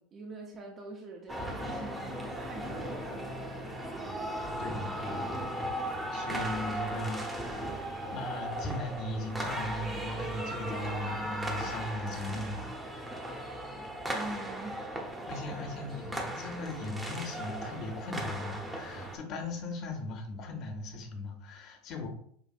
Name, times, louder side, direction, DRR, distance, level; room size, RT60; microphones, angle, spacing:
voice 1, 0.0-4.6 14.1-14.8, right 3 dB, 35° right, 0 dB, 0.7 m, -45 dB
sound 1, 1.3-19.2, right 1 dB, 10° right, 0.9 m, -37 dB
voice 2, 4.6-7.8 8.1-13.2 15.3-22.1, left 2 dB, 50° left, 3 dB, 1.2 m, -38 dB
5.9 x 2.6 x 2.5 m, 0.63 s
hypercardioid pair, 100°, 0 cm